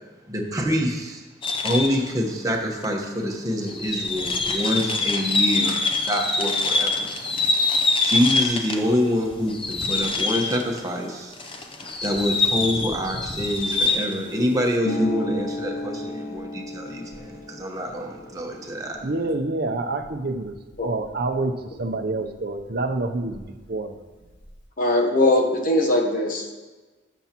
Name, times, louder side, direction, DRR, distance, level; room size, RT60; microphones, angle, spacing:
voice 1, 0.3-1.2 1.6-7.1 8.0-11.3 12.0-19.0, equal, 20° right, 0 dB, 1.1 m, -26 dB
sound 1, 1.4-2.1 2.8-2.9 3.6-8.9 9.2-10.9 11.3-14.2, left 3 dB, 25° left, 0.6 m, -24 dB
Harp, 14.8-22.3 22.6-23.7 23.9-24.6, equal, 65° left, 1.6 m, -34 dB
voice 2, 19.0-20.5 20.8-23.4 23.7-23.9, right 2 dB, 55° right, 7 dB, 0.6 m, -27 dB
voice 3, 24.8-26.5, left 2 dB, 45° left, 1 dB, 1.0 m, -20 dB
12.5 x 7.1 x 2.9 m, 1.3 s
head